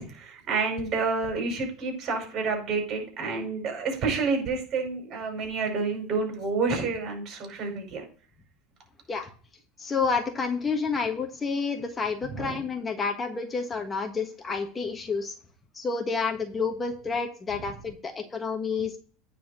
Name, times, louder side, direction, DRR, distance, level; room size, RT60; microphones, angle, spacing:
voice 1, 0.0-8.0 12.3-12.6, right 4 dB, 45° right, 3 dB, 5.4 m, -29 dB
voice 2, 9.8-15.3 15.7-19.0, left 5 dB, 25° left, 5 dB, 1.3 m, -29 dB
9.4 x 4.3 x 6.6 m, 0.41 s
supercardioid pair, 110°, 0 cm